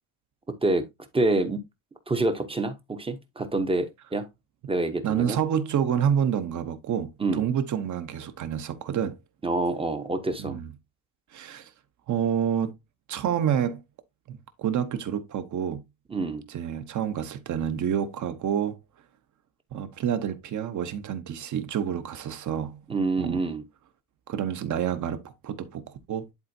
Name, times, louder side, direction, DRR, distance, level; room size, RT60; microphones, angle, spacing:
voice 1, 1.1-1.6 2.1-4.3 4.7-5.4 7.2-7.5 9.4-10.6 16.1-16.4 22.9-23.6, right 2 dB, 10° right, 0.7 m, -27 dB
voice 2, 5.0-9.2 10.4-10.7 11.3-11.7 12.1-12.7 13.1-13.8 14.3-15.8 16.5-18.8 19.7-22.8 23.2-23.4 24.3-26.3, right 9 dB, 40° right, 0.9 m, -28 dB
10.5 x 4.2 x 2.7 m
cardioid pair, 180°, 47 cm